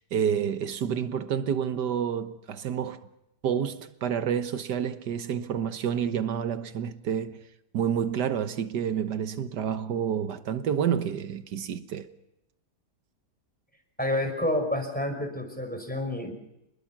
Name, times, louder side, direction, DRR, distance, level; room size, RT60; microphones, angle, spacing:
voice 1, 0.0-3.0 3.4-7.4 7.7-12.1, right 8 dB, 85° right, 1.7 m, -29 dB
voice 2, 14.0-16.3, left 1 dB, 5° left, 5.2 m, -29 dB
28.5 x 21.0 x 6.0 m
omnidirectional pair, 1.8 m